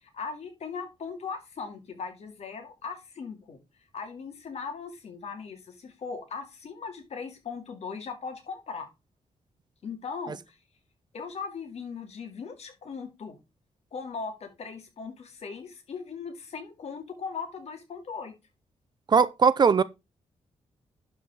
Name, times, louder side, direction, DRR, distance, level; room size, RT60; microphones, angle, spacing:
voice 1, 0.0-3.6 3.9-8.9 9.8-10.6 11.1-13.4 13.9-18.3, left 5 dB, 60° left, 2.3 m, -39 dB
voice 2, 19.1-19.8, right 6 dB, 35° right, 0.5 m, -19 dB
11.0 x 4.1 x 4.6 m
wide cardioid pair, 135°, 12 cm